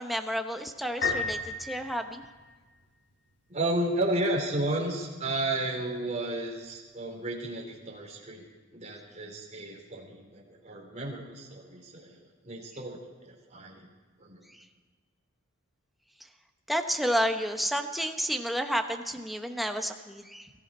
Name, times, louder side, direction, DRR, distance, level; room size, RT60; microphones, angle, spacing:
voice 1, 0.0-2.3 14.5-14.7 16.7-20.5, equal, ahead, 5 dB, 1.0 m, -31 dB
Piano, 1.0-2.8, left 4 dB, 60° left, 5.0 m, -33 dB
voice 2, 3.5-8.4 8.7-13.9 14.2-14.4, right 1 dB, 35° right, -1 dB, 3.5 m, -33 dB
23.0 x 14.5 x 4.3 m, 1.4 s
head